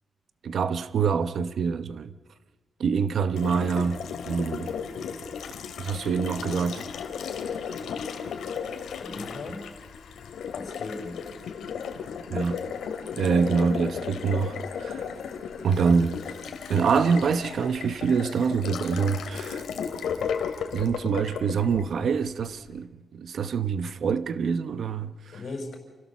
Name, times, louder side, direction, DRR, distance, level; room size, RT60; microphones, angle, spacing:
voice 1, 0.4-2.1 2.8-4.0 4.3-4.7 5.8-6.8 12.3-12.6 13.2-15.1 15.6-16.2 16.7-19.7 20.7-25.4, right 6 dB, 60° right, 0.9 m, -25 dB
Water tap faucet, 3.4-22.5, left 7 dB, 85° left, 2.4 m, -35 dB
voice 2, 9.0-9.7 10.5-11.2 25.3-25.8, left 3 dB, 55° left, 4.9 m, -37 dB
28.0 x 16.5 x 7.1 m
wide cardioid pair, 145°, 0 cm